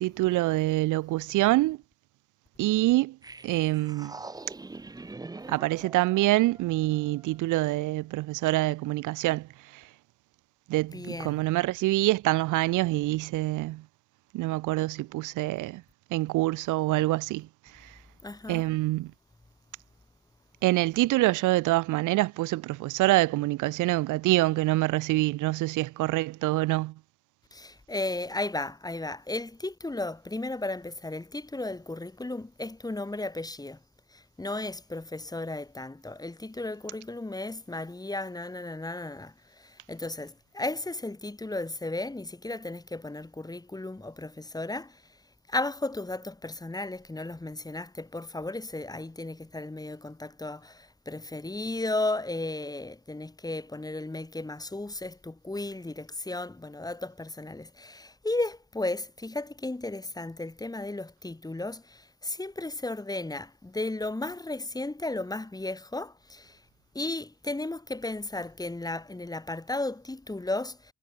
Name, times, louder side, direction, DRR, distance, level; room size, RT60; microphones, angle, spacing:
voice 1, 0.0-1.8 2.6-3.2 3.4-4.2 5.5-9.9 10.7-13.8 14.3-15.8 16.1-17.5 17.7-18.0 18.5-19.1 20.6-26.9, right 18 dB, 85° right, 0.6 m, -26 dB
sound 1, 3.2-7.5, right 3 dB, 15° right, 0.7 m, -44 dB
voice 2, 10.9-11.4 18.2-18.6 27.5-33.8 34.1-45.0 45.5-66.6 66.9-70.9, left 2 dB, 10° left, 2.0 m, -34 dB
cardioid pair, 90°, 30 cm